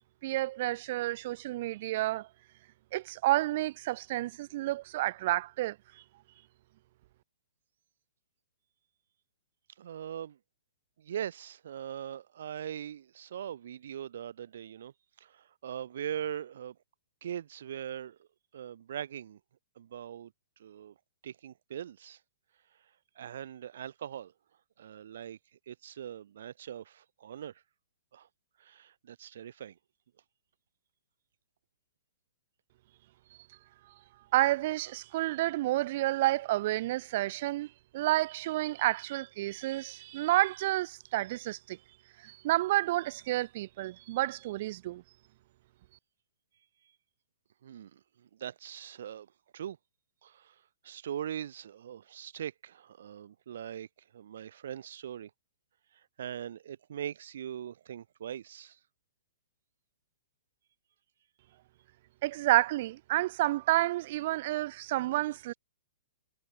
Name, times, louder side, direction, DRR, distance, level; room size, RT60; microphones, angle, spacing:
voice 1, 0.2-2.3 2.9-6.0 33.3-33.6 34.3-45.0 62.2-65.5, right 16 dB, 40° right, 1.3 m, -30 dB
voice 2, 9.8-10.4 11.0-14.9 15.2-16.8 17.2-18.3 18.5-19.4 19.8-20.3 20.6-20.9 21.2-22.2 23.2-24.3 24.8-25.4 25.7-27.5 28.1-28.3 28.6-29.8 47.6-49.3 49.5-49.8 50.2-50.5 50.8-53.9 54.1-55.3 56.2-58.8, right 10 dB, 60° right, 7.2 m, -41 dB
hypercardioid pair, 165°, 0 cm